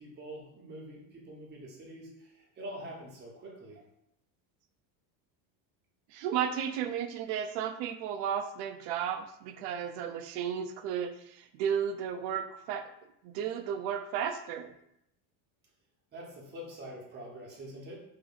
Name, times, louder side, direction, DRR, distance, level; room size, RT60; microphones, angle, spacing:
voice 1, 0.0-3.8 16.1-18.0, equal, 20° right, -3 dB, 0.8 m, -45 dB
voice 2, 6.1-12.9 13.2-14.7, right 8 dB, 70° right, 9 dB, 0.6 m, -34 dB
4.9 x 2.7 x 2.4 m, 0.78 s
cardioid pair, 155°, 50 cm